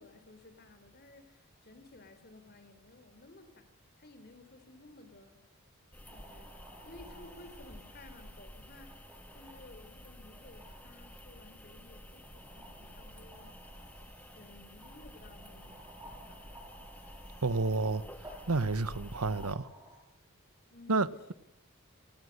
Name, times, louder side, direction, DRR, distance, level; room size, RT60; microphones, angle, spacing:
voice 1, 0.0-5.4 6.1-6.6 6.8-9.0 9.3-13.5 14.3-16.4 20.7-21.3, left 2 dB, 45° left, 3.6 m, -56 dB
sound 1, 5.9-19.5, equal, 5° left, 1.4 m, -51 dB
sound 2, 6.0-20.0, right 1 dB, 15° right, 7.9 m, -55 dB
voice 2, 17.4-18.0 18.5-19.7 20.9-21.3, right 3 dB, 90° right, 1.2 m, -30 dB
29.5 x 19.5 x 6.7 m
head